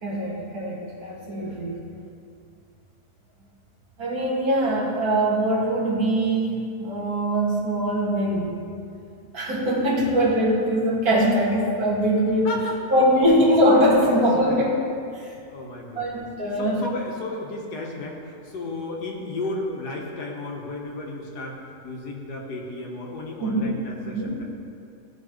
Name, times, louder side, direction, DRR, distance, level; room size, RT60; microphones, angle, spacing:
voice 1, 0.0-1.7 4.0-8.5 9.3-12.6 12.9-14.8 15.1-15.3 16.0-16.8 23.4-23.8 24.0-24.4, equal, 70° right, -5 dB, 2.2 m, -22 dB
voice 2, 12.4-13.4 14.1-14.7 15.5-16.3 16.6-21.6 21.8-24.4, left 2 dB, 80° left, -1 dB, 1.8 m, -34 dB
15.0 x 5.3 x 3.2 m, 2.4 s
omnidirectional pair, 1.7 m